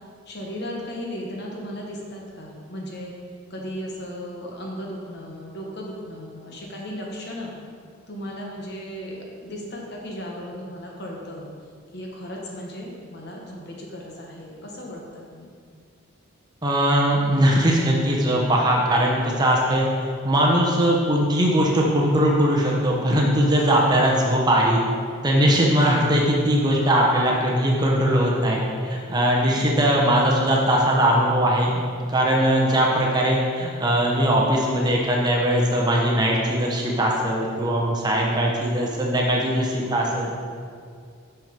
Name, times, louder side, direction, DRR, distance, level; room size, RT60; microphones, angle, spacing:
voice 1, 0.2-3.1 3.5-7.5 8.1-11.5 11.9-15.5 29.4-30.0 39.8-40.4, equal, 50° left, -1 dB, 1.2 m, -36 dB
voice 2, 16.6-19.8 20.2-24.8 25.2-31.7 32.0-40.3, right 1 dB, 20° right, -2 dB, 0.8 m, -20 dB
6.1 x 5.9 x 5.2 m, 2.2 s
head